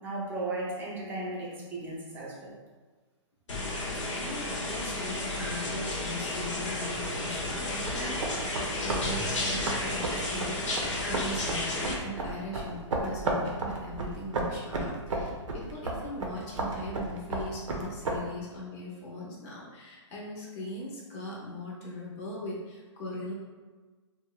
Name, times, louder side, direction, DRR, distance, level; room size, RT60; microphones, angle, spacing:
voice 1, 0.0-2.6, right 2 dB, 15° right, -5 dB, 0.5 m, -35 dB
sound 1, 3.5-11.9, left 2 dB, 75° left, 0.7 m, -32 dB
voice 2, 4.1-23.3, left 1 dB, 30° left, -4 dB, 0.6 m, -40 dB
sound 2, 7.7-18.2, right 2 dB, 85° right, 0.5 m, -34 dB
2.8 x 2.0 x 2.3 m, 1.4 s
hypercardioid pair, 145°, 16 cm